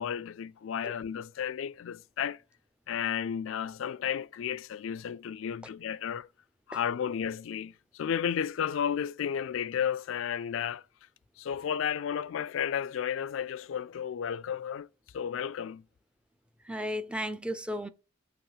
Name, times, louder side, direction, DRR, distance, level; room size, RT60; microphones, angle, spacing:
voice 1, 0.0-2.4 2.9-6.3 6.7-10.8 11.4-14.9 15.1-15.8, left 8 dB, 75° left, 0.3 m, -33 dB
voice 2, 16.6-17.9, equal, 5° right, 0.4 m, -34 dB
7.1 x 3.0 x 5.5 m
head